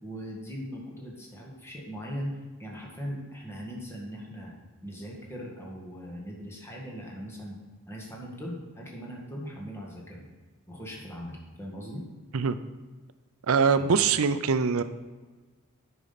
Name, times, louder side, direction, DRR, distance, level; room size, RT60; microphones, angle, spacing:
voice 1, 0.0-4.5 4.8-7.6 7.9-10.2 10.7-12.0 13.8-13.9, equal, 10° left, -2 dB, 1.8 m, -39 dB
voice 2, 13.5-14.8, right 5 dB, 70° right, 12 dB, 0.5 m, -23 dB
9.5 x 5.4 x 5.8 m, 1.3 s
head